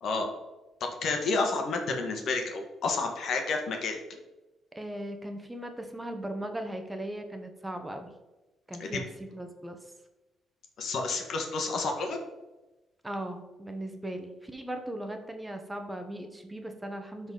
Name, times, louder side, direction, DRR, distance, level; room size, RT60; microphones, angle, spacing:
voice 1, 0.8-4.0 8.8-9.0 10.8-12.2, left 3 dB, 65° left, 3 dB, 1.5 m, -30 dB
voice 2, 4.7-8.1 8.7-9.8 13.0-17.3, right 1 dB, 10° right, 5 dB, 1.1 m, -38 dB
12.0 x 4.2 x 3.9 m, 1.1 s
cardioid pair, 90°, 0 cm